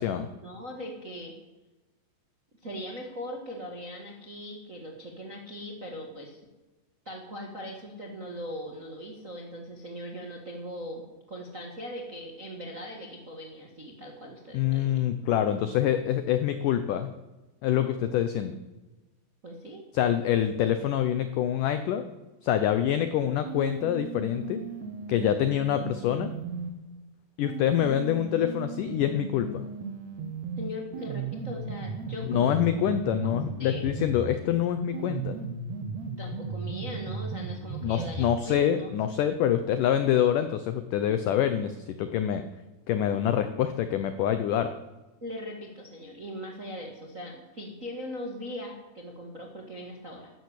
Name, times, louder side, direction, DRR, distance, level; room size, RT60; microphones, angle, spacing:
voice 1, 0.0-1.3 2.6-6.4 7.0-11.0 11.3-15.0 19.4-19.9 30.6-32.6 33.2-33.3 33.6-33.9 36.2-38.9 45.2-50.3, equal, 45° right, 1 dB, 1.0 m, -40 dB
voice 2, 14.5-17.1 17.6-18.6 19.9-22.0 22.4-24.6 25.1-26.3 27.4-29.7 32.3-35.4 37.8-42.4 42.9-44.7, left 10 dB, 85° left, 9 dB, 1.8 m, -26 dB
sound 1, 23.4-26.7 27.4-34.4 34.9-38.4, right 4 dB, 65° right, 1.9 m, -36 dB
13.0 x 10.5 x 8.4 m, 1.1 s
omnidirectional pair, 4.8 m